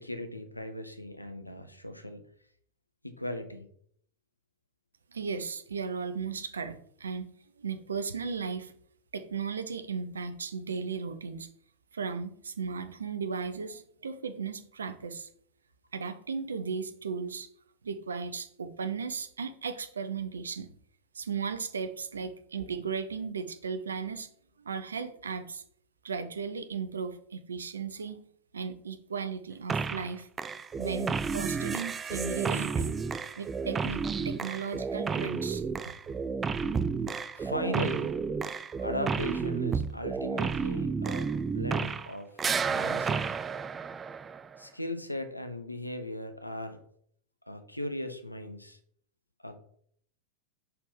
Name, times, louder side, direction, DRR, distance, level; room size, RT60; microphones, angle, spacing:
voice 1, 0.0-2.2 3.0-3.7 37.3-38.2 38.8-43.3 44.6-46.8 47.5-48.8 49.4-49.6, left 1 dB, 85° left, 8 dB, 0.8 m, -38 dB
voice 2, 5.1-7.3 7.6-8.7 9.1-11.5 11.9-15.3 15.9-17.5 17.8-20.7 21.1-24.3 24.6-25.6 26.0-28.2 28.5-30.3 30.8-32.9 33.4-35.9, right 5 dB, 70° right, 10 dB, 0.7 m, -36 dB
sound 1, 29.7-30.1 30.4-42.1 42.4-44.6, right 5 dB, 20° right, 0.3 m, -31 dB
5.4 x 4.5 x 5.5 m, 0.64 s
figure-of-eight pair, 90°, 0 cm